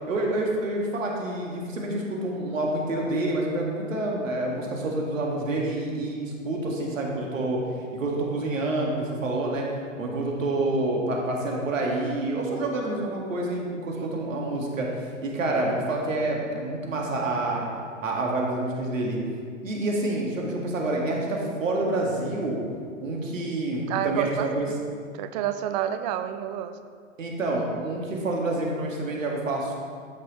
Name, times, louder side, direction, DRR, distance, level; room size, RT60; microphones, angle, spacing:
voice 1, 0.1-7.6 7.9-9.7 10.0-14.9 15.2-17.7 18.0-19.2 19.6-22.6 23.0-24.7 27.2-29.7, right 2 dB, 75° right, -1 dB, 1.9 m, -28 dB
voice 2, 23.9-24.8 25.1-26.8, right 10 dB, 35° right, 10 dB, 0.4 m, -29 dB
12.5 x 6.0 x 3.1 m, 2.1 s
hypercardioid pair, 110°, 39 cm